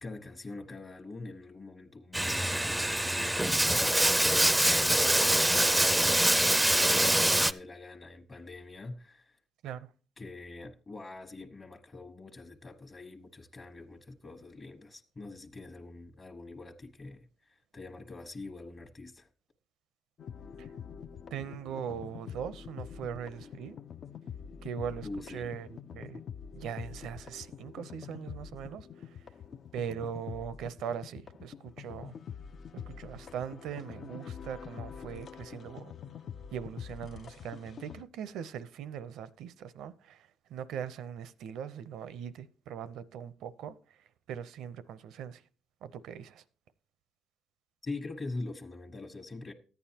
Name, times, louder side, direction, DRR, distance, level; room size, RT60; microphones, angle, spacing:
voice 1, 0.0-5.0 5.5-9.4 10.2-19.3 25.0-25.5 47.8-49.5, left 3 dB, 35° left, 1.1 m, -44 dB
Bathtub (filling or washing), 2.1-7.5, right 1 dB, 5° right, 0.5 m, -25 dB
sound 1, 20.2-38.0, left 7 dB, 55° left, 0.5 m, -45 dB
voice 2, 21.3-23.8 24.6-26.2 26.5-29.2 29.7-32.2 32.7-35.9 36.5-43.8 44.3-45.4 45.8-46.4, right 8 dB, 85° right, 0.6 m, -40 dB
14.0 x 9.2 x 2.9 m
cardioid pair, 90°, 0 cm